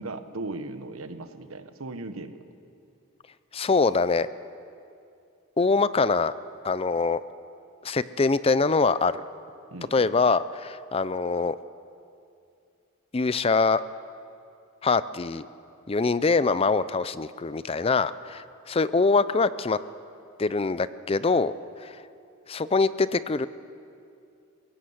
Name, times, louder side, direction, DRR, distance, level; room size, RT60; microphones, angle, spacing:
voice 1, 0.0-2.4 9.7-10.1, right 2 dB, 85° right, 9 dB, 1.2 m, -37 dB
voice 2, 3.5-4.3 5.6-6.3 6.6-7.2 7.8-9.1 9.9-11.6 13.1-13.8 14.8-15.5 15.9-19.8 20.4-21.5 21.8-22.0 22.5-23.5, left 4 dB, 25° left, 15 dB, 0.4 m, -23 dB
23.0 x 16.5 x 7.9 m, 2.5 s
head